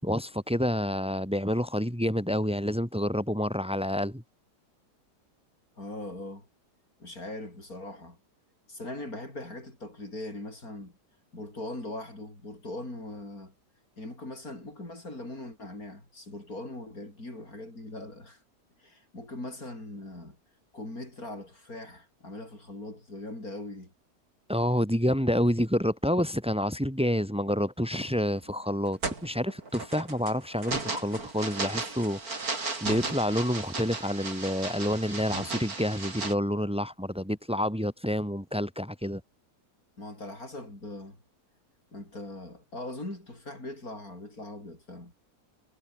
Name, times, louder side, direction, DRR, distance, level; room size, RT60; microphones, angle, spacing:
voice 1, 0.0-4.2 24.5-32.3 32.8-39.2, equal, 5° right, 4.8 m, -28 dB
voice 2, 5.8-6.5 7.0-8.2 8.7-10.9 11.3-13.5 14.0-18.4 18.8-20.4 20.7-23.9 40.0-41.2 41.9-45.1, left 1 dB, 60° left, 8.3 m, -40 dB
sound 1, 27.9-28.2 28.7-36.3, right 3 dB, 60° right, 4.3 m, -35 dB
omnidirectional pair, 1.7 m